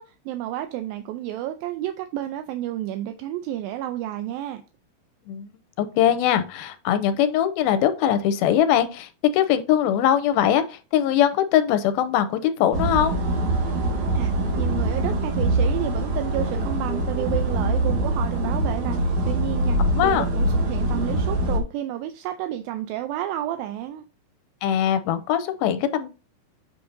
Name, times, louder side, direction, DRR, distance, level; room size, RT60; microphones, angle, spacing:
voice 1, 0.0-4.6 14.1-24.1, right 13 dB, 80° right, 2.3 m, -31 dB
voice 2, 5.8-13.2 19.9-20.2 24.6-26.1, left 10 dB, 85° left, 2.5 m, -21 dB
sound 1, 12.7-21.6, right 1 dB, 55° right, 1.9 m, -23 dB
8.6 x 6.0 x 2.7 m
omnidirectional pair, 4.3 m